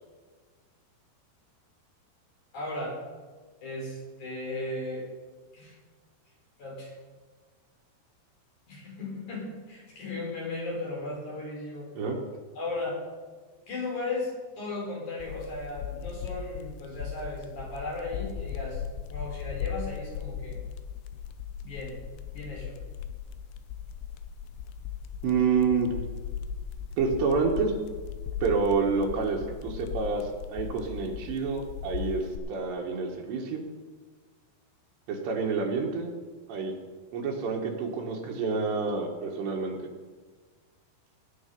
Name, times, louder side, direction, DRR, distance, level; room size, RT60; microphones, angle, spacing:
voice 1, 2.5-3.0 3.6-5.0 5.5-5.7 6.6-6.9 8.7-11.9 12.5-13.0 13.7-18.8 19.1-20.6 21.6-22.0 22.3-22.8, left 2 dB, 45° left, -2 dB, 4.9 m, -36 dB
sound 1, 15.2-32.4, left 8 dB, 80° left, 2.9 m, -38 dB
voice 2, 25.2-25.9 27.0-27.7 28.4-33.7 35.1-36.2 36.5-36.7 37.1-39.8, right 5 dB, 80° right, 0 dB, 3.6 m, -28 dB
18.0 x 9.8 x 5.4 m, 1.5 s
omnidirectional pair, 4.9 m